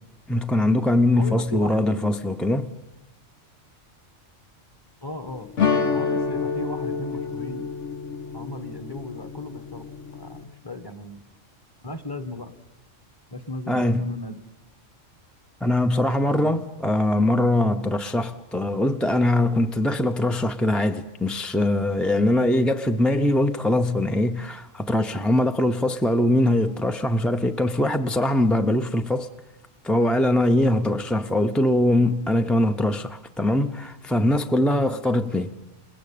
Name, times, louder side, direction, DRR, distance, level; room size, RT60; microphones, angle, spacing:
voice 1, 0.3-2.7 13.7-14.1 15.6-29.3 29.8-35.5, left 1 dB, ahead, 0.5 m, -22 dB
voice 2, 1.1-1.9 5.0-5.5 5.9-7.7 8.3-11.2 11.8-12.5 13.3-14.4 16.2-16.6 34.7-35.0, left 2 dB, 20° left, 1.2 m, -36 dB
sound 1, 5.6-10.4, left 5 dB, 70° left, 1.8 m, -28 dB
29.0 x 19.5 x 8.6 m
omnidirectional pair, 1.3 m